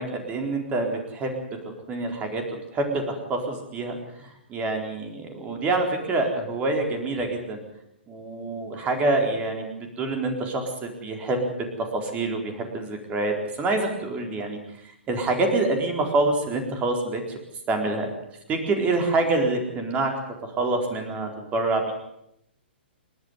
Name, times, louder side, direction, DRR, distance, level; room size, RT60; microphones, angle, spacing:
voice 1, 0.0-1.6 1.9-7.6 8.1-11.5 11.8-14.6 15.1-17.4 17.7-18.1 18.5-20.1 20.4-21.9, right 2 dB, 20° right, 4 dB, 4.2 m, -26 dB
30.0 x 10.5 x 9.6 m, 0.80 s
figure-of-eight pair, 115°, 6 cm